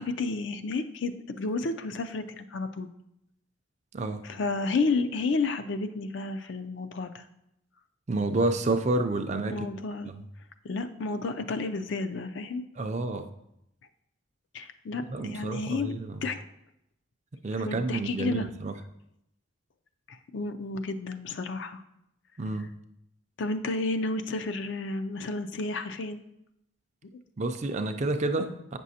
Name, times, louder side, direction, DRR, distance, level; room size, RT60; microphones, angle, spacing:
voice 1, 0.0-2.9 4.2-7.2 9.5-10.1 10.6-12.6 14.5-15.9 16.2-16.4 17.6-18.5 20.1-21.8 23.4-26.2, left 3 dB, 65° left, 0.4 m, -31 dB
voice 2, 3.9-4.3 8.1-9.7 10.1-10.2 12.8-13.3 15.1-16.2 17.4-18.8 22.4-22.7 27.4-28.8, right 2 dB, 35° right, 0.4 m, -29 dB
8.4 x 6.1 x 2.8 m
head